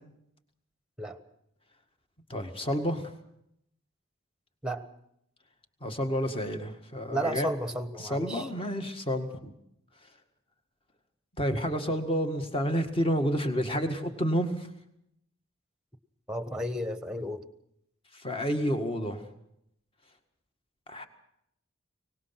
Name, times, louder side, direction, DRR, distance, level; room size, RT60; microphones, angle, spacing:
voice 1, 2.3-3.1 5.8-7.5 8.0-9.5 11.4-14.7 18.2-19.3 20.9-21.1, equal, 25° left, 6 dB, 1.9 m, -30 dB
voice 2, 7.1-8.5 16.3-17.4, right 1 dB, 5° right, 12 dB, 1.2 m, -33 dB
23.5 x 19.5 x 6.0 m, 0.76 s
head